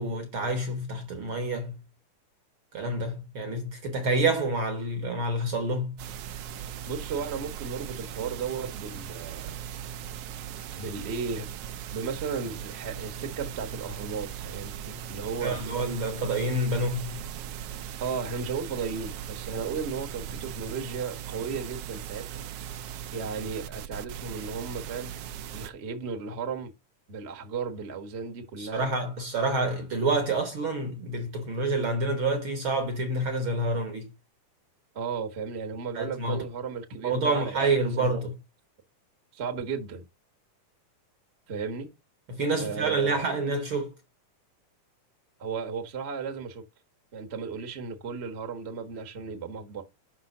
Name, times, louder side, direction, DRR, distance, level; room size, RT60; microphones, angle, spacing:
voice 1, 0.0-1.7 2.7-5.9 15.4-17.1 28.6-34.1 35.9-36.4 37.0-38.3 42.3-43.9, right 2 dB, 60° right, 1.5 m, -28 dB
sound 1, 6.0-25.7, right 9 dB, 90° right, 1.3 m, -39 dB
voice 2, 6.9-9.6 10.7-11.5 11.9-15.6 18.0-22.5 23.1-25.2 25.5-26.7 27.1-28.9 34.9-38.2 39.3-40.0 41.5-41.9 42.6-43.2 45.4-46.6 47.1-49.8, right 5 dB, 40° right, 0.9 m, -35 dB
5.8 x 5.8 x 6.7 m
omnidirectional pair, 3.6 m